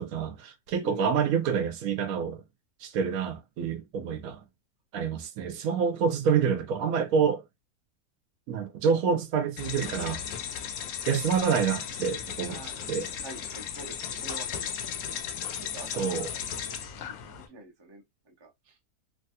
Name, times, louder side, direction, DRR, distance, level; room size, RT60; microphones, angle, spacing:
voice 1, 0.0-2.4 2.8-4.4 4.9-7.4 8.5-10.2 11.1-12.6 12.9-13.1 16.0-16.3, right 6 dB, 75° right, 1.0 m, -27 dB
voice 2, 0.8-1.3 12.5-14.8 15.0-15.1 15.6-18.8, right 1 dB, 35° right, 0.4 m, -46 dB
sound 1, 9.6-17.5, left 8 dB, 75° left, 1.0 m, -36 dB
3.1 x 2.3 x 2.7 m
omnidirectional pair, 1.6 m